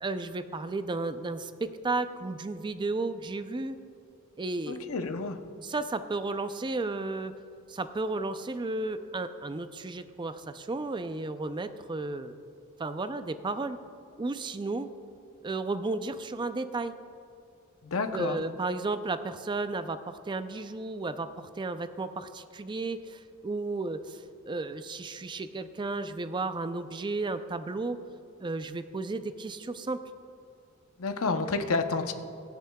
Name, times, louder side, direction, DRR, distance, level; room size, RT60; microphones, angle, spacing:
voice 1, 0.0-3.8 4.4-4.8 5.6-7.3 7.7-12.4 12.8-13.8 14.2-14.9 15.4-16.9 18.1-28.0 28.4-30.0, right 3 dB, 20° right, 11 dB, 0.4 m, -33 dB
voice 2, 4.7-5.4 17.8-18.4 31.0-32.1, left 3 dB, 75° left, 7 dB, 0.7 m, -30 dB
23.0 x 8.2 x 2.3 m, 2.5 s
head